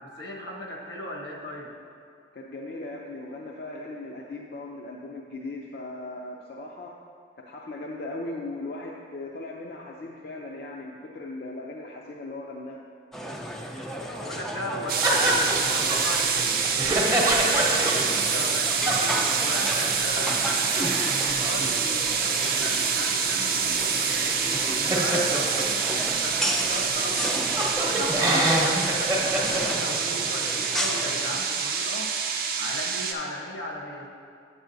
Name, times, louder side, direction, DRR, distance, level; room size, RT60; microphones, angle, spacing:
voice 1, 0.0-1.7 14.1-16.6 16.9-20.4 20.7-24.4 24.8-27.4 27.8-32.1 32.6-34.1, left 1 dB, 80° left, 0 dB, 1.1 m, -37 dB
voice 2, 2.3-7.0 7.4-12.8, left 2 dB, 60° left, -2 dB, 0.5 m, -38 dB
sound 1, 13.1-31.4, equal, ahead, 0.4 m, -35 dB
sound 2, 14.9-33.1, right 6 dB, 55° right, 0.6 m, -26 dB
sound 3, 15.0-19.9 20.2-20.3 20.5-26.1 26.7-26.8 27.0-29.6, right 1 dB, 15° right, 0.8 m, -27 dB
9.1 x 8.1 x 2.6 m, 2.4 s
head